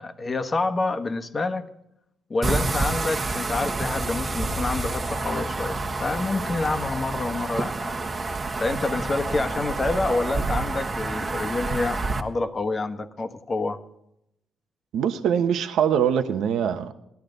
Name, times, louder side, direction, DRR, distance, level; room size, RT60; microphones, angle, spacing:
voice 1, 0.0-1.6 2.3-8.0 8.6-13.8, left 3 dB, 30° left, 8 dB, 1.2 m, -28 dB
sound 1, 2.4-12.2, right 3 dB, 30° right, 1.3 m, -28 dB
voice 2, 14.9-16.9, right 8 dB, 80° right, 8 dB, 1.0 m, -23 dB
17.5 x 12.0 x 3.9 m, 0.82 s
cardioid pair, 90°, 0 cm